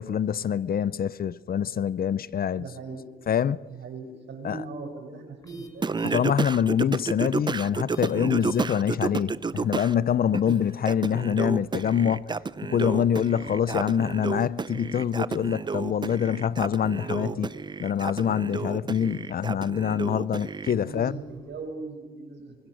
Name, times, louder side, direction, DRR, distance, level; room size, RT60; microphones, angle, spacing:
voice 1, 0.0-2.7 3.3-3.6 4.4-4.6 6.0-12.3 12.6-17.5 17.8-21.1, left 8 dB, 50° left, 0.7 m, -25 dB
voice 2, 2.6-3.1 3.7-6.0 17.1-17.6 20.8-22.6, right 3 dB, 65° right, 6.5 m, -39 dB
sound 1, 5.4-21.7, left 2 dB, 20° left, 5.0 m, -60 dB
Singing, 5.8-9.9 10.3-20.7, right 4 dB, 20° right, 0.6 m, -31 dB
25.0 x 24.5 x 6.4 m
cardioid pair, 90°, 20 cm